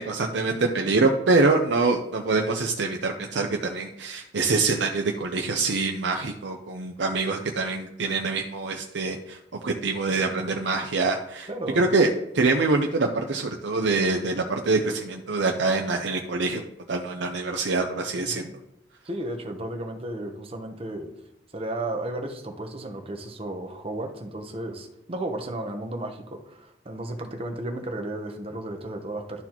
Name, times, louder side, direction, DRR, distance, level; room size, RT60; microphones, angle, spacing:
voice 1, 0.0-9.4 9.6-11.5 11.8-16.6 16.9-18.5, right 3 dB, 85° right, 2 dB, 0.6 m, -25 dB
voice 2, 11.5-11.9 18.1-18.5 19.0-21.1 21.5-29.4, right 1 dB, 35° right, 5 dB, 0.9 m, -34 dB
12.0 x 4.1 x 2.9 m, 0.83 s
head